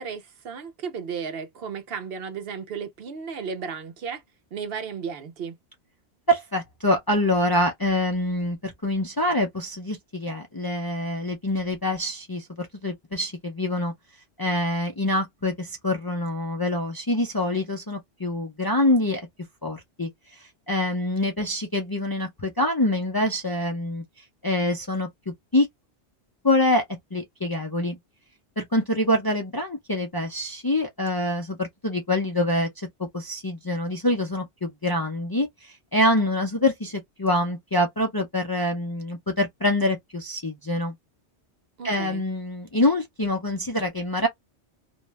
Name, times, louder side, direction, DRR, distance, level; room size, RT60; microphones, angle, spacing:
voice 1, 0.0-4.2 4.5-5.6 41.8-42.2, right 6 dB, 65° right, 0.8 m, -34 dB
voice 2, 6.3-13.9 14.4-19.3 19.6-24.0 24.4-25.1 25.5-25.7 26.4-26.8 27.1-28.0 28.6-32.9 33.1-40.9 41.8-44.3, left 1 dB, 30° left, 0.4 m, -25 dB
2.5 x 2.2 x 3.0 m
omnidirectional pair, 1.1 m